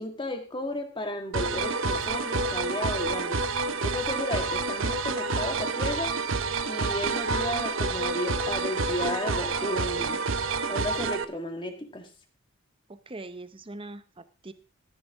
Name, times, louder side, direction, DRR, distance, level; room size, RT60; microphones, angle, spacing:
voice 1, 0.0-6.2 6.6-10.2 10.7-12.1, left 1 dB, 20° left, 5 dB, 1.7 m, -34 dB
sound 1, 1.3-11.2, right 3 dB, 65° right, 0.7 m, -28 dB
voice 2, 12.9-14.5, right 2 dB, 25° right, 12 dB, 0.7 m, -42 dB
14.0 x 11.0 x 3.5 m, 0.34 s
head